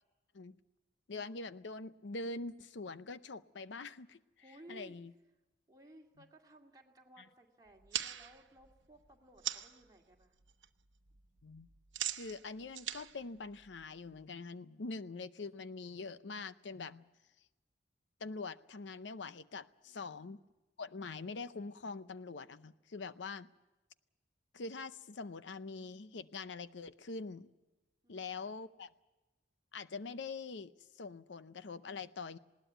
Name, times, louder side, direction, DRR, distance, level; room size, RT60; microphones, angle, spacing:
voice 1, 1.1-4.2 4.7-5.1 11.4-11.7 12.2-17.0 18.2-20.4 20.8-23.5 24.5-27.5 28.1-28.9 29.7-30.7 31.0-32.4, left 3 dB, 75° left, 14 dB, 0.6 m, -44 dB
voice 2, 4.4-5.0 5.7-10.4 19.9-20.5 28.0-28.5, right 1 dB, 20° right, 0 dB, 2.2 m, -59 dB
sound 1, 7.7-9.8 10.2-10.7 10.9-14.2, right 11 dB, 85° right, 0.9 m, -42 dB
20.5 x 17.5 x 9.2 m, 1.1 s
head